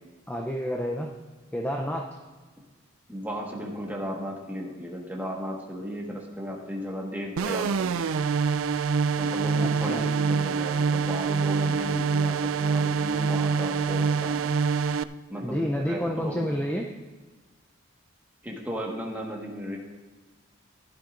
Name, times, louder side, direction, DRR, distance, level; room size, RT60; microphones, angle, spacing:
voice 1, 0.3-1.1 1.5-2.1 9.6-10.0 15.4-16.9, equal, 5° left, 0 dB, 0.5 m, -29 dB
voice 2, 3.1-8.0 9.2-14.6 15.3-16.5 18.4-19.8, equal, 10° right, -1 dB, 1.5 m, -35 dB
sound 1, 7.4-15.0, right 5 dB, 75° right, 0.3 m, -25 dB
15.0 x 11.5 x 2.6 m, 1.3 s
head